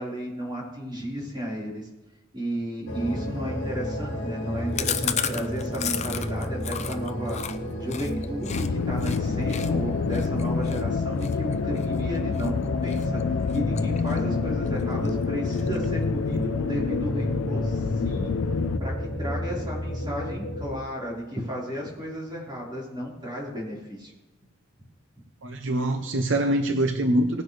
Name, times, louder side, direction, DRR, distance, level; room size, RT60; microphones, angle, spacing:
voice 1, 0.0-1.9 2.3-7.4 7.8-13.1 13.5-18.3 18.8-24.1, equal, 25° right, 4.6 m, -33 dB
sound 1, 2.9-20.8, left 1 dB, 70° left, 2.0 m, -31 dB
Chewing mastication, 4.8-8.7 9.0-9.2 9.5-12.5 12.9-13.2 13.5-14.4 14.7-14.8 15.1-15.2 15.5-16.0, left 8 dB, 35° left, 0.6 m, -33 dB
sound 2, 8.5-18.8, left 6 dB, 90° left, 0.3 m, -28 dB
voice 2, 25.4-27.4, right 1 dB, 65° right, 0.8 m, -24 dB
18.5 x 10.5 x 3.4 m
head